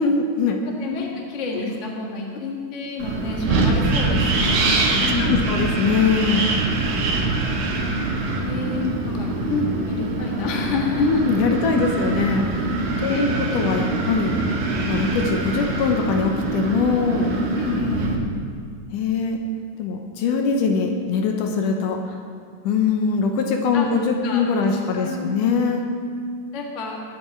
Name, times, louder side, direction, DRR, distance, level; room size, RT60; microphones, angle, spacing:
voice 1, 0.0-0.6 1.5-1.6 4.9-6.5 9.5-9.7 11.0-14.3 14.9-17.3 18.9-19.4 19.8-22.2 22.6-25.9, left 5 dB, 75° left, 3 dB, 2.2 m, -22 dB
voice 2, 0.8-5.5 8.4-9.3 9.9-11.2 13.1-13.2 17.5-18.3 23.7-23.9 24.2-25.3 26.5-27.0, left 3 dB, 40° left, -1 dB, 1.0 m, -29 dB
Wind, 3.0-18.2, right 2 dB, 85° right, 3.2 m, -24 dB
21.0 x 7.9 x 4.4 m, 2.1 s
omnidirectional pair, 4.1 m